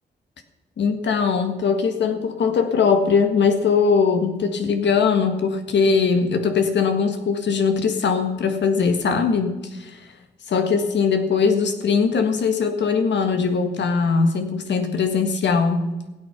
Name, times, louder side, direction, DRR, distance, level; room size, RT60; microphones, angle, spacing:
voice 1, 0.8-10.0 10.5-15.9, left 5 dB, 70° left, 7 dB, 1.7 m, -20 dB
16.0 x 9.2 x 6.0 m, 1.1 s
supercardioid pair, 45°, 19 cm